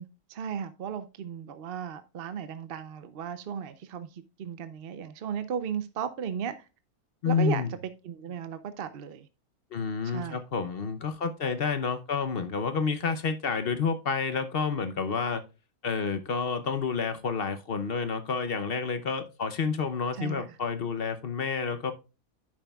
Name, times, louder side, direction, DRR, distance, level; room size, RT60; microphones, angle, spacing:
voice 1, 0.0-6.6 7.2-7.8 8.0-9.3 10.0-10.4 20.1-20.6, right 8 dB, 60° right, 0.6 m, -36 dB
voice 2, 7.2-7.7 9.7-15.4 15.8-21.9, left 5 dB, 50° left, 0.8 m, -29 dB
10.0 x 7.2 x 2.3 m
omnidirectional pair, 1.6 m